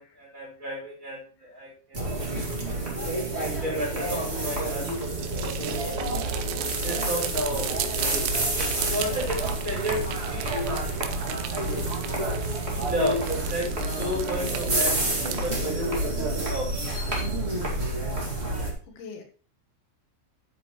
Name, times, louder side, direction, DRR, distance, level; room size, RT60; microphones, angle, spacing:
voice 1, 0.0-2.1 3.0-4.9 5.6-6.0 6.8-7.9 8.8-10.6 11.5-11.9 12.6-13.2 13.5-16.7, equal, 15° right, -4 dB, 4.9 m, -33 dB
sound 1, 1.9-18.7, right 2 dB, 50° right, 0.7 m, -28 dB
sound 2, 4.9-15.6, right 11 dB, 85° right, 3.3 m, -37 dB
voice 2, 12.3-12.6 17.5-18.1 18.4-18.5 19.0-19.2, left 5 dB, 75° left, 3 dB, 3.6 m, -46 dB
11.5 x 8.2 x 3.1 m, 0.38 s
omnidirectional pair, 5.3 m